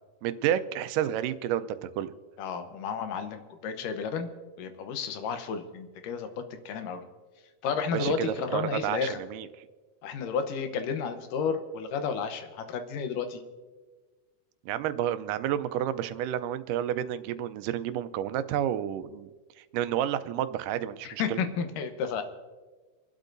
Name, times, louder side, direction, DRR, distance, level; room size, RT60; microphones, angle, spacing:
voice 1, 0.2-2.1 7.9-9.5 14.7-19.3 19.6-21.4, right 11 dB, 90° right, 11 dB, 2.2 m, -30 dB
voice 2, 2.4-4.3 4.6-7.0 7.6-9.2 10.0-13.4 21.0-22.2, left 6 dB, 85° left, 7 dB, 2.6 m, -32 dB
28.5 x 12.0 x 2.6 m, 1.4 s
omnidirectional pair, 3.7 m